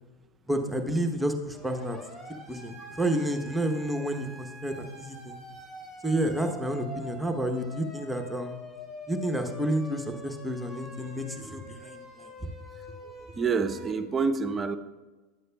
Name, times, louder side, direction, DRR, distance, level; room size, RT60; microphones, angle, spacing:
voice 1, 0.5-2.0 2.5-5.4 6.0-8.6 9.1-12.3, right 1 dB, 5° right, 4 dB, 0.8 m, -30 dB
Siren, 1.5-13.9, left 1 dB, 25° left, 2.5 m, -45 dB
voice 2, 13.0-14.8, right 5 dB, 25° right, 8 dB, 0.5 m, -28 dB
10.5 x 8.1 x 2.2 m, 1.2 s
hypercardioid pair, 95°, 0 cm